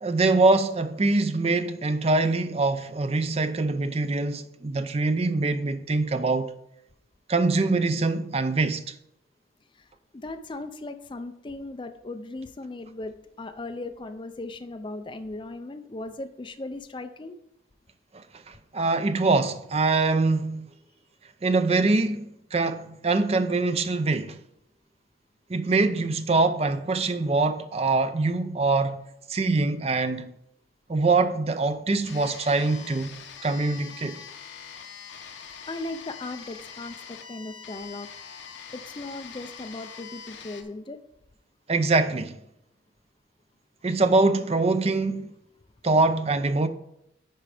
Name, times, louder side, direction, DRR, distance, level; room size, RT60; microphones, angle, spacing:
voice 1, 0.0-6.5 7.3-8.8 18.5-20.7 21.4-24.4 25.5-29.0 29.3-30.3 30.9-34.2 41.7-42.4 43.8-45.3 45.8-46.7, right 3 dB, 30° right, 0.5 m, -24 dB
voice 2, 9.7-17.4 35.7-38.1 38.7-41.0, left 2 dB, 25° left, 0.4 m, -37 dB
sound 1, 32.0-40.6, left 6 dB, 70° left, 0.9 m, -43 dB
10.0 x 4.5 x 5.0 m
head